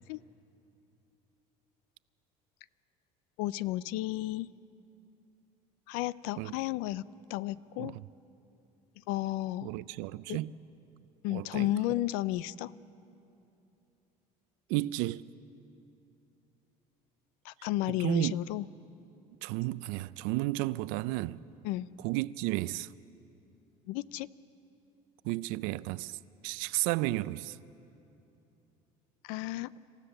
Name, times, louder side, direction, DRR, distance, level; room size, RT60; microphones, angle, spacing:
voice 1, 3.4-4.5 5.9-7.0 7.3-8.0 9.1-9.7 10.3-10.4 11.2-12.7 17.4-18.6 21.6-21.9 23.9-24.3 29.2-29.8, left 15 dB, 80° left, 0.5 m, -33 dB
voice 2, 9.6-10.5 11.3-11.7 14.7-15.3 17.9-18.3 19.4-21.4 22.0-22.9 25.2-27.6, right 18 dB, 80° right, 0.4 m, -33 dB
27.0 x 15.5 x 6.7 m
cardioid pair, 165°, 14 cm